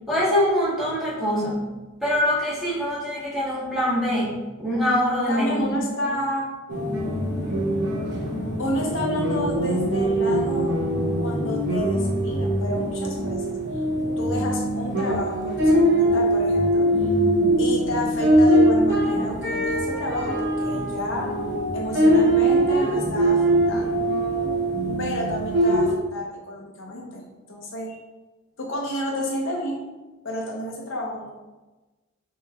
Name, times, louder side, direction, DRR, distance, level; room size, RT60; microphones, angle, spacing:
voice 1, 0.1-1.6 2.0-5.5, equal, ahead, -9 dB, 1.4 m, -24 dB
voice 2, 5.3-6.5 8.6-10.7 11.2-13.6 14.2-16.9 17.6-21.3 21.7-24.0 25.0-28.0 28.6-29.8 30.2-31.3, left 1 dB, 60° left, -1 dB, 0.7 m, -30 dB
sound 1, 6.7-25.9, right 1 dB, 55° right, 0.9 m, -22 dB
6.4 x 3.0 x 2.4 m, 1.1 s
head